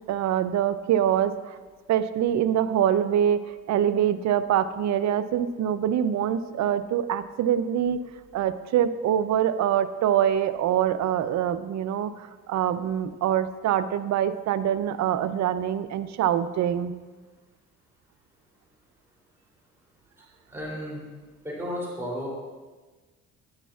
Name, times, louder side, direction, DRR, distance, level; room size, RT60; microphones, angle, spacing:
voice 1, 0.1-1.6 1.9-3.4 3.7-8.0 8.3-16.9, right 10 dB, 65° right, 12 dB, 0.6 m, -24 dB
voice 2, 20.5-21.0 21.4-22.3, equal, 10° right, -5 dB, 3.0 m, -33 dB
10.5 x 10.0 x 2.4 m, 1.3 s
cardioid pair, 90°, 30 cm